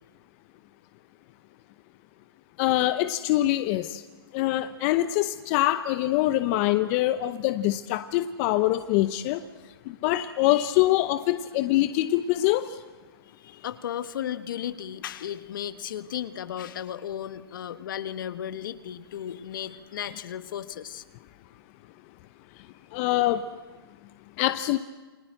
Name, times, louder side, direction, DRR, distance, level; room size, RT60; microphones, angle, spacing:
voice 1, 2.6-4.0 4.3-9.4 10.0-12.7 22.9-23.4 24.4-24.8, left 15 dB, 35° left, 11 dB, 0.8 m, -24 dB
voice 2, 13.4-21.0, left 10 dB, 55° left, 11 dB, 1.4 m, -35 dB
29.0 x 22.0 x 7.8 m, 1.3 s
hypercardioid pair, 135°, 13 cm